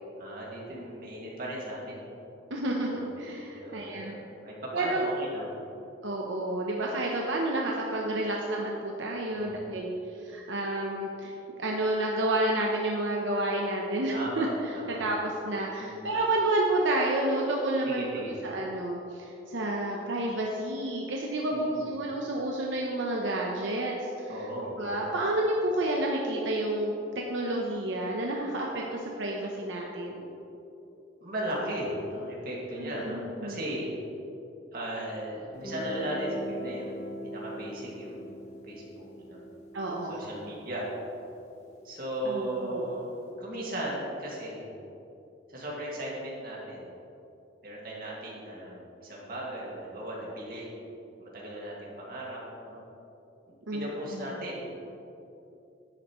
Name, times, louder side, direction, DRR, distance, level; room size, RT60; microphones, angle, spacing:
voice 1, 0.2-2.0 2.8-3.0 3.5-4.2 4.4-5.5 9.3-9.7 14.1-15.0 15.8-16.1 17.9-18.4 21.5-21.8 24.3-25.1 31.2-34.0 34.7-39.4 40.1-40.9 41.8-44.7 45.5-46.9 47.6-50.7 51.2-52.4 52.7-52.8 53.5-54.6, right 1 dB, 50° right, -5 dB, 2.2 m, -37 dB
voice 2, 2.5-4.2 4.7-5.1 6.0-9.9 10.2-11.3 11.6-18.0 18.4-24.0 24.4-24.5 24.8-27.0 27.3-30.2 32.8-33.6 39.7-40.3 42.2-42.8 53.7-54.2, right 1 dB, 80° right, -1 dB, 0.9 m, -30 dB
Guitar, 35.5-41.3, equal, 35° left, 1.4 m, -40 dB
11.0 x 8.9 x 3.2 m, 2.9 s
head